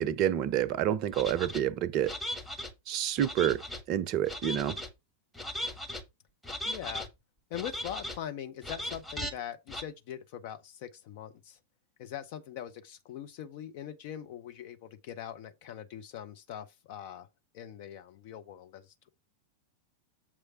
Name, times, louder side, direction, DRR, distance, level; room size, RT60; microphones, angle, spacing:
voice 1, 0.0-2.1 2.9-3.6 3.9-4.8, right 11 dB, 40° right, 0.6 m, -28 dB
sound 1, 1.1-1.6 2.0-2.7 3.2-3.8 4.3-4.9 5.3-6.0 6.4-7.1 7.5-8.2 8.6-9.3 9.7-9.8, left 1 dB, 5° left, 1.2 m, -38 dB
voice 2, 6.6-7.1 7.5-11.6 12.0-17.3 17.5-19.1, left 10 dB, 50° left, 0.7 m, -42 dB
7.3 x 3.2 x 5.5 m
figure-of-eight pair, 90°, 0 cm